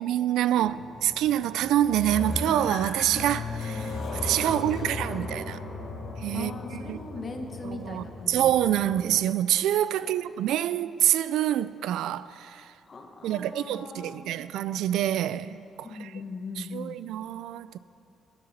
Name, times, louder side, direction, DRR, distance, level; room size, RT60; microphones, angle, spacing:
voice 1, 0.0-5.6 6.2-6.5 6.9-7.0 7.6-12.6 13.2-15.9 16.7-17.8, right 12 dB, 85° right, 0.3 m, -26 dB
sound 1, 0.6-9.2, left 3 dB, 65° left, 2.8 m, -36 dB
voice 2, 4.5-4.8 6.3-9.1 9.9-10.2 12.8-14.2 15.8-17.0, left 3 dB, 40° left, 1.2 m, -40 dB
9.8 x 9.6 x 7.2 m
cardioid pair, 90°, 0 cm